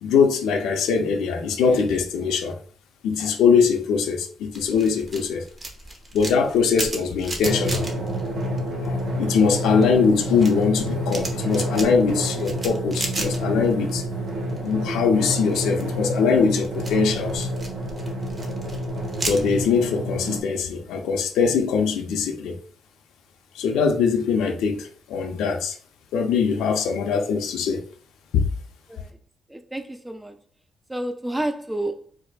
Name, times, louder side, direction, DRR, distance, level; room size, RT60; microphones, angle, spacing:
voice 1, 0.0-2.6 3.0-5.4 6.1-7.9 8.8-14.0 14.6-17.5 19.2-22.6 23.5-25.8 26.1-27.9 28.3-28.5, left 5 dB, 85° left, 0.6 m, -22 dB
sound 1, 4.5-9.1 9.5-13.9 14.2-14.8 15.3-19.8, right 2 dB, 30° right, 0.8 m, -34 dB
Drum, 7.4-20.4, equal, 65° right, 1.2 m, -28 dB
voice 2, 29.5-30.4 30.9-32.1, right 1 dB, 10° right, 0.4 m, -30 dB
4.6 x 2.2 x 2.4 m
cardioid pair, 90°, 0 cm